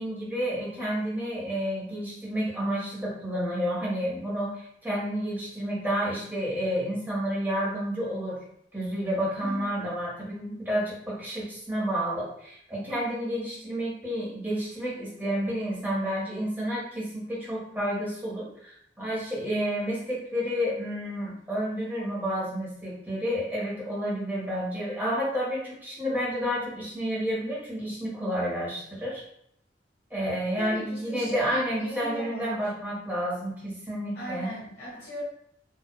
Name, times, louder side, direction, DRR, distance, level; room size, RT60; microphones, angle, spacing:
voice 1, 0.0-8.4 8.7-29.2 30.1-34.5, equal, 10° right, -7 dB, 1.3 m, -30 dB
voice 2, 9.4-9.7 30.6-32.6 34.1-35.2, right 1 dB, 70° left, -9 dB, 1.2 m, -38 dB
4.6 x 2.6 x 2.2 m, 0.71 s
head